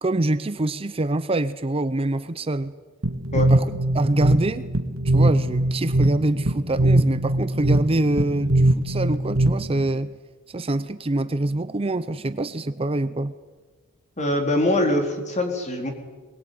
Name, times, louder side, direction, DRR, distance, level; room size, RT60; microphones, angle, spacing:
voice 1, 0.0-2.8 3.3-4.7 5.0-10.1 10.5-13.3, right 2 dB, 25° right, 13 dB, 0.7 m, -25 dB
sound 1, 3.0-9.9, right 1 dB, 70° right, 2.0 m, -21 dB
voice 2, 14.2-15.9, left 1 dB, 35° left, 4 dB, 4.0 m, -23 dB
22.5 x 21.0 x 9.4 m, 1.3 s
head